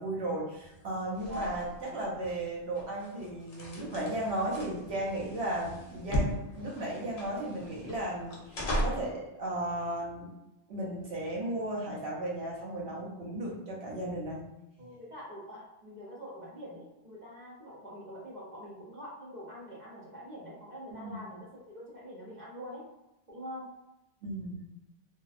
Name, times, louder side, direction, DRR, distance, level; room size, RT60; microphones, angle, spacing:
voice 1, 0.0-10.3 10.7-14.5 20.9-21.2 24.2-24.7, right 1 dB, 75° right, -4 dB, 1.1 m, -35 dB
sound 1, 0.5-9.1, equal, 60° left, 0.7 m, -37 dB
voice 2, 14.8-22.8 23.3-23.7, equal, 50° right, -6 dB, 0.8 m, -44 dB
2.7 x 2.1 x 2.4 m, 0.93 s
omnidirectional pair, 1.1 m